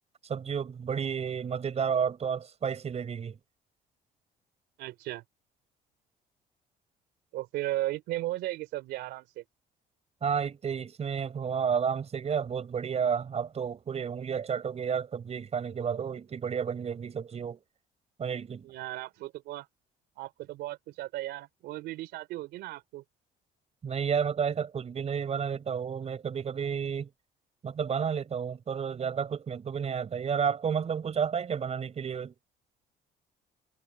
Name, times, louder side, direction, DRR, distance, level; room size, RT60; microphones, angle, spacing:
voice 1, 0.3-3.4 10.2-17.6 18.2-18.7 23.8-27.1 27.6-32.3, right 7 dB, 40° right, 5.5 m, -31 dB
voice 2, 4.8-5.2 7.3-9.4 18.6-19.7 20.2-23.0, right 16 dB, 85° right, 3.3 m, -36 dB
cardioid pair, 110°, 17 cm